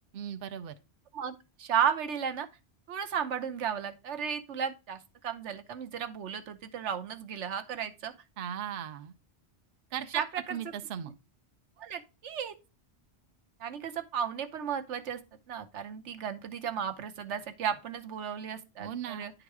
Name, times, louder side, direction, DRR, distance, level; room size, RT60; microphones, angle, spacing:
voice 1, 0.1-0.7 8.4-9.1 9.9-10.2 10.5-11.1 18.8-19.3, right 9 dB, 60° right, 0.8 m, -37 dB
voice 2, 1.1-2.5 2.9-8.1 10.1-10.2 11.8-12.5 13.6-15.2 15.5-19.3, right 8 dB, 85° right, 1.2 m, -34 dB
10.0 x 4.0 x 4.7 m
omnidirectional pair, 1.2 m